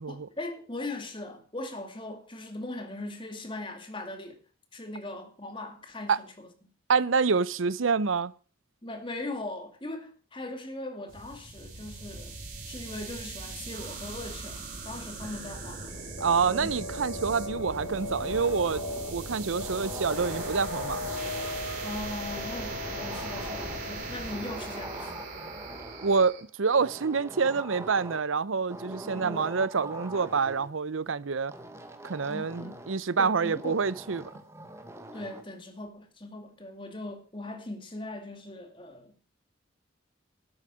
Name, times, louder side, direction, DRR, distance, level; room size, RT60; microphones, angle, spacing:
voice 1, 0.1-4.4 4.7-6.5 8.8-12.4 12.7-16.1 16.5-16.8 21.8-25.2 29.0-29.4 32.3-32.8 33.2-33.8 35.1-39.3, left 2 dB, 25° left, 2.4 m, -39 dB
voice 2, 6.9-8.3 16.2-18.8 19.1-21.0 26.0-31.5 32.0-34.3, right 5 dB, 90° right, 0.7 m, -27 dB
sound 1, 11.1-26.4, right 3 dB, 45° right, 3.6 m, -40 dB
sound 2, 16.2-25.4, left 3 dB, 85° left, 1.6 m, -39 dB
sound 3, 17.7-19.2 19.6-21.7 22.3-24.0 24.3-26.3 26.7-28.3 28.7-30.7 31.5-33.0 33.4-35.5, right 1 dB, 15° right, 1.4 m, -43 dB
12.0 x 8.9 x 6.3 m
head